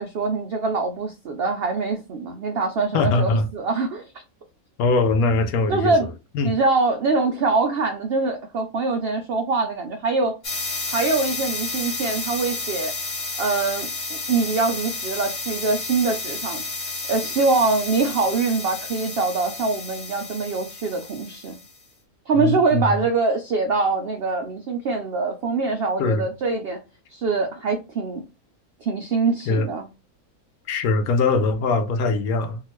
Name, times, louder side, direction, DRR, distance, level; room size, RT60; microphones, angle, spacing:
voice 1, 0.0-4.1 5.7-6.1 6.4-10.3 10.9-12.9 13.4-16.6 17.1-21.6 22.3-26.8 27.1-28.2 28.8-29.9, right 3 dB, 80° right, 0.5 m, -24 dB
voice 2, 2.9-3.5 4.8-5.9 6.3-6.5 22.3-23.0 26.0-26.3 29.5-29.7 30.7-32.6, left 3 dB, 75° left, 1.0 m, -21 dB
sound 1, 10.4-21.7, left 3 dB, 45° left, 0.4 m, -31 dB
2.8 x 2.3 x 3.0 m
omnidirectional pair, 1.6 m